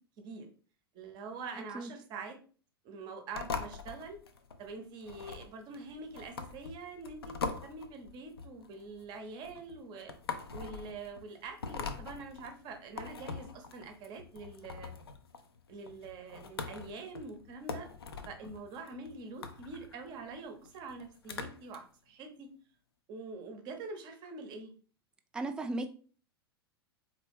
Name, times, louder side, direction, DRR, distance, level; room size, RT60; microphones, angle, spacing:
voice 1, 0.9-2.4 2.8-4.2 4.6-10.1 10.5-14.9 15.7-17.9 18.3-22.5 23.1-24.7, right 3 dB, 35° right, 5 dB, 0.9 m, -45 dB
sound 1, 3.3-21.8, left 5 dB, 70° left, 0.5 m, -43 dB
voice 2, 25.3-25.9, right 2 dB, 5° right, 7 dB, 0.3 m, -35 dB
3.9 x 3.3 x 3.4 m, 0.41 s
figure-of-eight pair, 95°, 13 cm